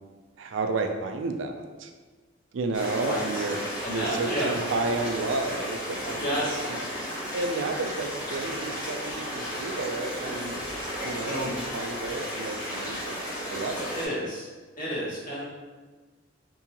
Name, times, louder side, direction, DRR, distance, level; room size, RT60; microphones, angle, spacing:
voice 1, 0.4-1.9 2.5-6.2 6.7-6.8 7.3-10.6 11.0-11.4 11.7-14.0, right 3 dB, 70° right, 5 dB, 0.4 m, -31 dB
small creek, 2.7-14.1, equal, 20° left, 1.2 m, -34 dB
voice 2, 3.0-3.4 3.8-4.5 6.2-6.7 11.3-11.5 13.9-14.5 14.8-15.4, equal, 45° left, -8 dB, 1.4 m, -30 dB
3.7 x 2.8 x 2.8 m, 1.4 s
head